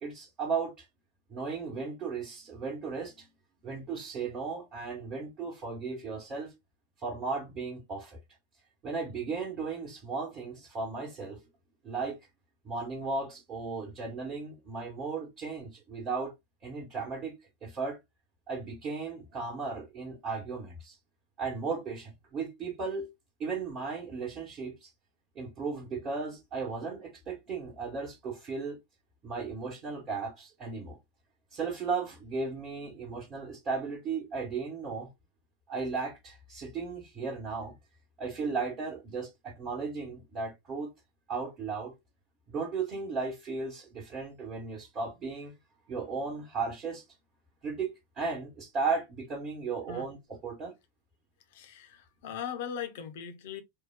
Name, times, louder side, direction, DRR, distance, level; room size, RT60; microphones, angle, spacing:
voice 1, 0.0-0.8 1.3-3.3 3.6-6.5 7.0-8.2 8.8-11.4 11.8-12.2 12.6-16.3 16.6-18.0 18.5-21.0 21.4-23.1 23.4-24.9 25.3-28.8 29.2-31.0 31.5-35.1 35.7-37.7 38.2-40.9 41.3-41.9 42.5-45.5 45.9-47.0 47.6-50.7, right 4 dB, 30° right, 1.1 m, -35 dB
voice 2, 51.5-53.6, left 8 dB, 55° left, 0.8 m, -39 dB
3.7 x 2.2 x 3.5 m
figure-of-eight pair, 90°, 0 cm